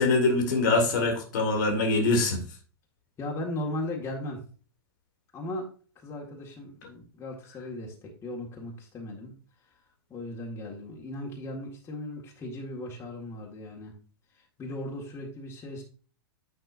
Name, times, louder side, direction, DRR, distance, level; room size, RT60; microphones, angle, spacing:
voice 1, 0.0-2.4, left 3 dB, 50° left, 4 dB, 1.9 m, -24 dB
voice 2, 3.2-4.4 5.3-5.7 6.0-9.3 10.1-14.0 14.3-15.8, left 1 dB, 20° left, -1 dB, 1.8 m, -37 dB
9.2 x 5.4 x 2.6 m, 0.40 s
figure-of-eight pair, 100°, 13 cm